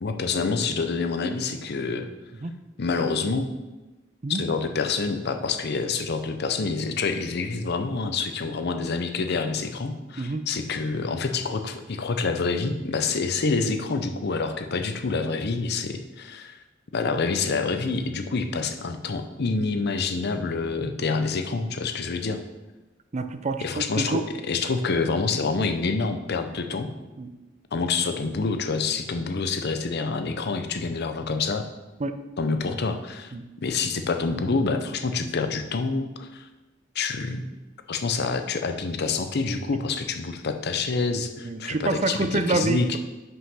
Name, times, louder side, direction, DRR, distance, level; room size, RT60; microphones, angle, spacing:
voice 1, 0.0-2.1 2.8-3.5 4.4-16.5 16.9-22.4 23.6-24.2 24.5-26.9 27.7-31.6 32.4-33.3 33.6-36.5 37.0-37.5 37.9-42.9, left 4 dB, 55° left, 7 dB, 0.6 m, -27 dB
voice 2, 23.1-24.2 27.2-27.3 32.0-32.1 33.3-33.4 41.4-43.0, right 3 dB, 35° right, 9 dB, 0.5 m, -27 dB
5.7 x 5.6 x 5.6 m, 1.1 s
head